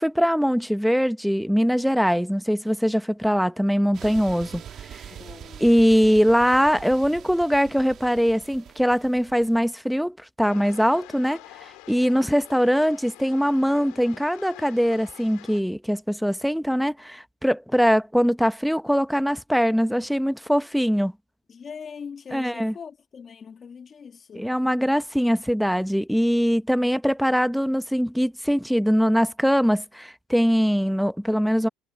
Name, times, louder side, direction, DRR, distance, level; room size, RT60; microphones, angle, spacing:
voice 1, 0.0-4.6 4.9-5.0 5.6-21.1 22.3-22.7 24.3-31.7, equal, ahead, 0.9 m, -22 dB
sound 1, 3.9-9.6, right 10 dB, 50° right, 2.1 m, -43 dB
voice 2, 5.1-5.7 21.5-24.5, left 6 dB, 35° left, 1.9 m, -41 dB
sound 2, 10.4-15.6, left 23 dB, 80° left, 3.8 m, -46 dB
supercardioid pair, 105°, 0 cm